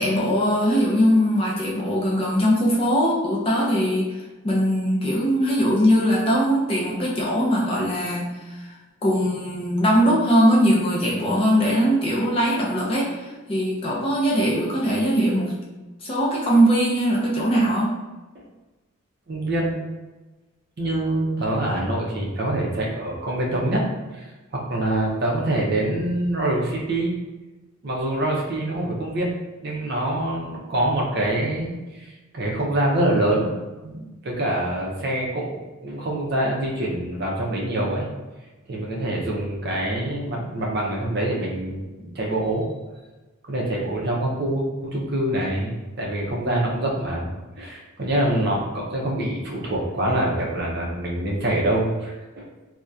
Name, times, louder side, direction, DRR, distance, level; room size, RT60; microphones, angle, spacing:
voice 1, 0.0-4.1 4.4-8.3 8.6-8.7 9.0-15.6 16.0-18.0, equal, 25° left, -4 dB, 0.4 m, -21 dB
voice 2, 19.3-19.8 20.8-23.8 24.1-27.1 27.8-29.4 29.6-33.5 33.8-38.1 38.7-42.7 43.5-47.3 47.6-52.5, right 1 dB, 50° right, -2 dB, 0.5 m, -25 dB
2.6 x 2.1 x 2.3 m, 1.2 s
head